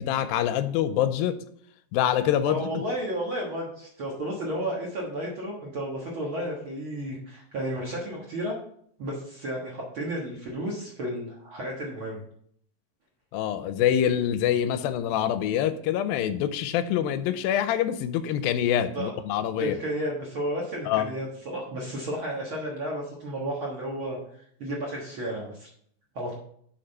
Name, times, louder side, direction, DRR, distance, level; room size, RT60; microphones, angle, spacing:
voice 1, 0.0-1.4 1.9-2.8 13.3-19.8 20.9-21.1, left 10 dB, 85° left, 12 dB, 2.3 m, -25 dB
voice 2, 2.4-8.5 9.0-12.2 18.9-19.1 19.6-24.2 24.6-25.7 26.1-26.3, right 1 dB, 50° right, -3 dB, 1.6 m, -32 dB
6.7 x 5.8 x 5.4 m, 0.64 s
omnidirectional pair, 4.2 m